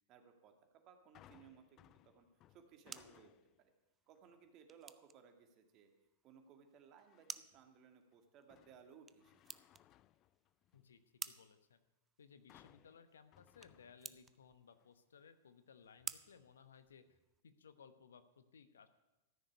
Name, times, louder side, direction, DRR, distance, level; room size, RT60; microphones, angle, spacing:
voice 1, 0.1-3.3 4.1-5.9 6.2-9.6, right 7 dB, 40° right, 5 dB, 2.1 m, -62 dB
sound 1, 1.1-3.7 4.1-4.5 7.0-7.7 8.1-11.0 12.5-14.4 14.8-14.9, left 13 dB, 35° left, 0.4 m, -67 dB
sound 2, 2.4-17.4, right 6 dB, 20° right, 0.5 m, -55 dB
voice 2, 11.3-11.8 12.2-17.2 17.4-18.9, left 6 dB, 75° left, 11 dB, 1.0 m, -62 dB
14.0 x 6.6 x 9.3 m, 0.99 s
hypercardioid pair, 100°, 0 cm